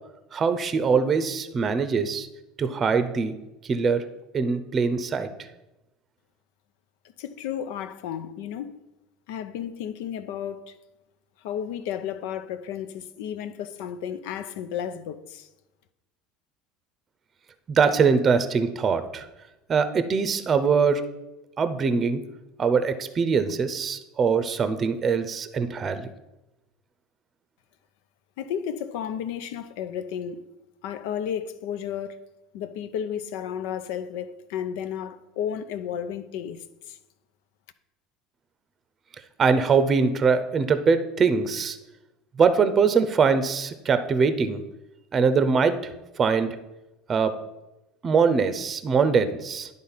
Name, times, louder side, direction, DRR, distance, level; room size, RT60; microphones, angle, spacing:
voice 1, 0.3-2.3 2.6-3.3 3.6-4.0 4.3-5.3 17.7-19.3 19.7-21.0 21.6-22.2 22.6-26.1 39.4-41.8 42.4-44.6 45.1-45.9 46.2-46.6 47.1-47.4 48.0-49.7, right 5 dB, 35° right, 0.7 m, -22 dB
voice 2, 7.2-8.8 9.3-10.7 11.4-15.5 28.4-30.4 30.8-32.2 32.5-37.0, left 9 dB, 75° left, 0.6 m, -33 dB
10.0 x 3.7 x 5.7 m
supercardioid pair, 95°, 0 cm